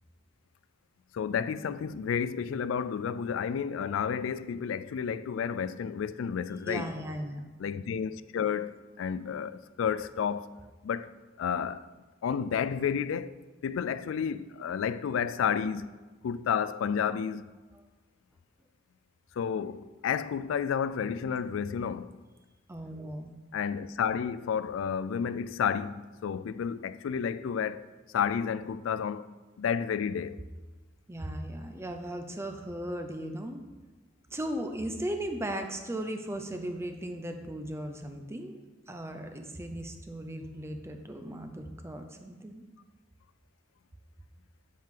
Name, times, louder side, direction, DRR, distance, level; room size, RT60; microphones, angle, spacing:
voice 1, 1.1-6.9 7.6-10.6 10.8-11.1 11.4-11.9 12.2-13.3 13.6-15.9 16.2-17.4 19.3-22.1 23.5-27.8 28.1-30.4, left 7 dB, 85° left, 0.3 m, -31 dB
voice 2, 6.7-7.4 17.7-17.8 22.7-23.3 31.1-33.6 34.3-38.6 38.9-42.6, right 1 dB, 15° right, 0.5 m, -37 dB
7.5 x 7.5 x 3.7 m
head